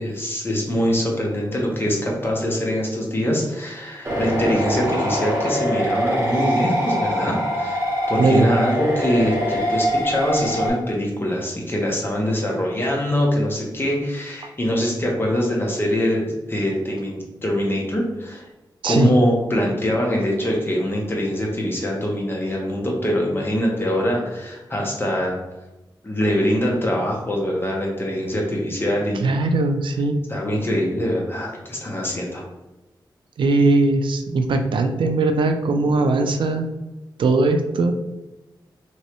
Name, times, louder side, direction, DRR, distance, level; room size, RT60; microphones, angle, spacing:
voice 1, 0.0-18.5 18.8-25.4 26.0-29.3 30.3-32.4, equal, 30° left, -1 dB, 0.9 m, -23 dB
sound 1, 4.0-10.7, equal, 35° right, 1.1 m, -23 dB
voice 2, 29.2-30.2 33.4-36.7 37.2-37.9, right 3 dB, 80° right, 6 dB, 0.4 m, -19 dB
3.1 x 3.0 x 3.0 m, 1.0 s
wide cardioid pair, 100°, 8 cm